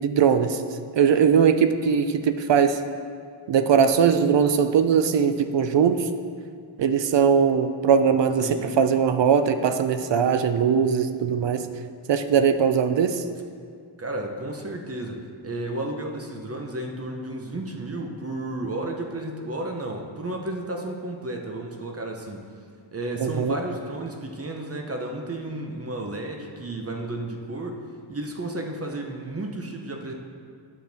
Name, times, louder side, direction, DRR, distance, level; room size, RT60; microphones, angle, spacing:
voice 1, 0.0-0.6 1.0-2.8 3.5-6.1 6.8-11.7 12.1-13.2 23.2-23.6, right 7 dB, 60° right, 9 dB, 0.5 m, -20 dB
voice 2, 8.4-8.7 14.0-22.5 22.9-27.8 28.1-30.1, right 1 dB, 30° right, 2 dB, 0.7 m, -32 dB
10.5 x 6.2 x 3.4 m, 2.2 s
wide cardioid pair, 135°, 49 cm